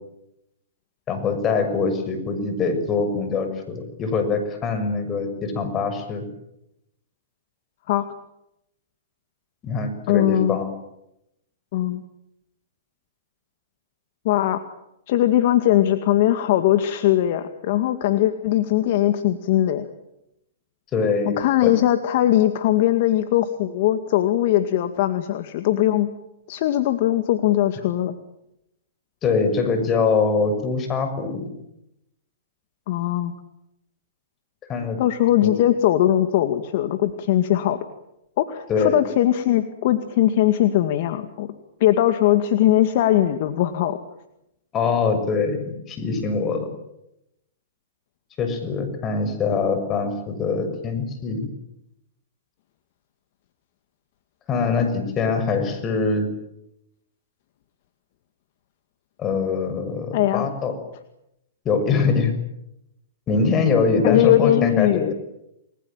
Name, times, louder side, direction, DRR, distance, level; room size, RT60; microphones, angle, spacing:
voice 1, 1.1-6.3 9.6-10.7 20.9-21.3 21.6-21.7 29.2-31.5 34.7-35.0 35.4-35.5 38.7-39.0 44.7-46.7 48.4-51.4 54.5-56.3 59.2-60.7 61.6-62.3 63.3-65.1, left 4 dB, 25° left, 8 dB, 6.7 m, -23 dB
voice 2, 10.1-10.6 11.7-12.0 14.2-14.6 15.1-19.9 21.3-26.1 26.5-28.2 32.9-33.3 35.0-37.8 38.4-41.5 41.8-44.0 60.1-60.5 64.0-65.1, left 13 dB, 55° left, 9 dB, 2.1 m, -20 dB
29.5 x 20.5 x 9.0 m, 0.84 s
hypercardioid pair, 125°, 0 cm